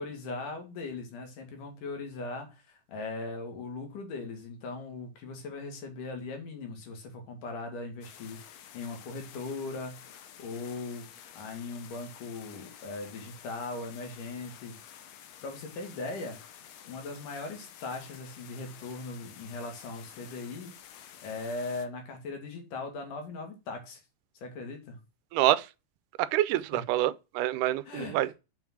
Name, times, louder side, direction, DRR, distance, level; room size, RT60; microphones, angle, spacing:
voice 1, 0.0-11.1 11.4-14.8 15.4-16.4 16.9-20.7 21.2-24.0 24.4-25.0 26.7-26.9 27.9-28.3, left 3 dB, 90° left, 3.7 m, -39 dB
sound 1, 8.0-21.9, left 9 dB, 65° left, 1.8 m, -51 dB
voice 2, 25.3-25.7 26.2-28.3, right 14 dB, 85° right, 2.2 m, -27 dB
6.8 x 6.0 x 6.2 m
omnidirectional pair, 3.6 m